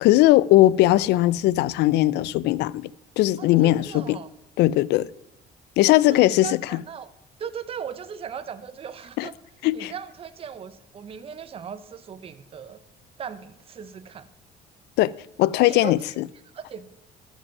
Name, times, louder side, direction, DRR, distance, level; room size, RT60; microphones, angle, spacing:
voice 1, 0.0-2.9 3.2-4.2 4.6-5.1 5.8-6.8 9.2-9.3 9.6-9.9 15.0-15.1 15.4-16.2, left 16 dB, 80° left, 0.4 m, -19 dB
voice 2, 3.4-4.3 6.1-7.1 7.4-9.3 9.7-12.8 13.2-14.3 15.6-16.1 16.5-16.9, right 7 dB, 35° right, 0.6 m, -38 dB
13.0 x 5.4 x 5.9 m
cardioid pair, 110°, 17 cm